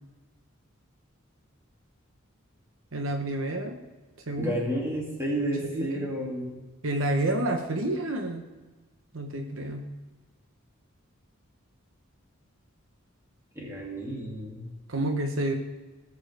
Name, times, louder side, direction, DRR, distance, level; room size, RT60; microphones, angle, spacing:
voice 1, 2.9-3.8 4.3-4.5 5.7-6.1 6.8-8.5 9.1-9.9 14.9-15.6, right 1 dB, 75° right, 4 dB, 1.1 m, -29 dB
voice 2, 4.4-6.6 13.5-14.7, equal, 15° right, -3 dB, 2.5 m, -31 dB
17.0 x 7.3 x 3.4 m, 1.3 s
head